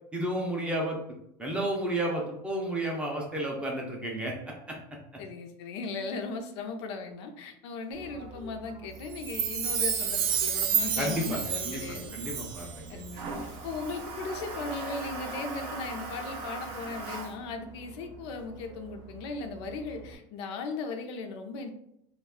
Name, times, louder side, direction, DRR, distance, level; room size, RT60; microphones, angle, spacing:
voice 1, 0.1-1.0 1.4-4.3 11.0-13.0, right 1 dB, 10° right, -1 dB, 0.4 m, -32 dB
voice 2, 5.2-12.2 12.6-13.3 13.6-21.7, left 4 dB, 75° left, 5 dB, 0.5 m, -37 dB
Toilet flush, 7.9-20.2, right 3 dB, 40° right, 0.7 m, -42 dB
Chime, 9.1-12.8 13.0-13.1, right 7 dB, 85° right, 0.6 m, -30 dB
2.3 x 2.2 x 3.5 m, 0.76 s
cardioid pair, 160°, 14 cm